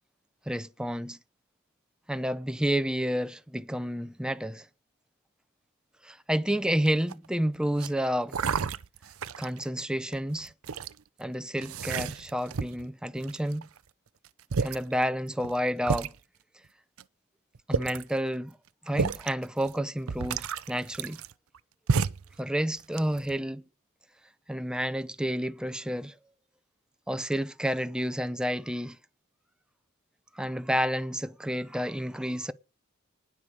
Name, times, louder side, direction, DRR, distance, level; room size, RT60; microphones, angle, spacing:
voice 1, 0.5-1.2 2.1-4.7 6.0-8.4 9.4-10.5 11.2-13.7 14.6-16.1 17.7-18.6 18.8-21.2 22.4-23.6 24.5-26.2 27.1-29.0 30.3-32.5, equal, 5° right, 0.6 m, -30 dB
sound 1, 6.9-7.3 7.8-7.9 8.3-9.6 10.1-10.9 11.6-12.9 13.2-13.8 14.2-14.3 14.5-14.8 15.4-15.5 15.9-16.1 17.0-17.1 17.5-18.1 18.9-19.3 19.7-19.8 20.1-21.6 21.9-22.3 22.8-23.4, right 5 dB, 90° right, 0.7 m, -30 dB
19.5 x 7.1 x 4.8 m
head